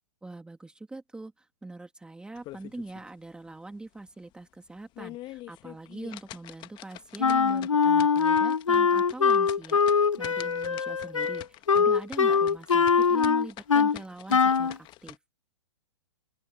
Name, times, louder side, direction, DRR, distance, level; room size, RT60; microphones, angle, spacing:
voice 1, 0.2-15.2, right 2 dB, 5° right, 2.5 m, -42 dB
sound 1, 2.4-3.1 3.5-3.6 4.1-4.2 4.8-15.2, left 17 dB, 30° left, 1.6 m, -46 dB
Wind instrument woodwind instrument, 7.2-14.0 14.3-14.7, left 6 dB, 90° left, 0.5 m, -23 dB
open air
figure-of-eight pair, 115°, 16 cm